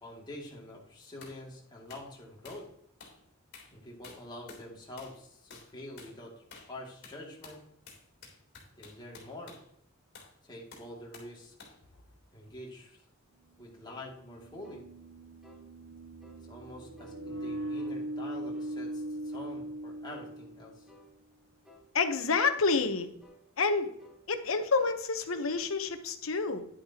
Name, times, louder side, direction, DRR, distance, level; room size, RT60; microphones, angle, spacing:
voice 1, 0.0-2.7 3.7-6.3 6.7-7.6 8.8-9.6 10.4-11.5 12.3-13.0 13.6-14.8 16.5-20.9, left 1 dB, 20° left, -2 dB, 2.5 m, -46 dB
sound 1, 1.2-1.4 1.9-2.1 2.4-2.7 3.0-3.2 3.5-3.7 4.0-4.7 5.0-5.2 5.5-5.7 6.0-6.2 6.5-6.7 7.0-9.7 10.1-10.3 10.7-11.3 11.6-11.8, left 4 dB, 55° left, 3.2 m, -51 dB
sound 2, 12.5-12.6 14.1-20.9, right 1 dB, 80° right, 1.1 m, -40 dB
sound 3, 13.9-14.1 14.6-14.9 15.4-15.7 16.2-16.4 17.0-17.2 17.8-18.0 18.5-18.8 19.3-19.6 20.1-20.3 20.9-21.1 21.6-21.9 22.4-22.7 23.2-23.4 24.0-24.2 24.8-25.0 25.4-25.8, equal, 5° right, 1.6 m, -57 dB
voice 2, 21.9-23.1 23.6-23.9 24.3-26.7, left 4 dB, 80° left, 8 dB, 1.0 m, -28 dB
10.5 x 8.7 x 2.9 m, 0.71 s
head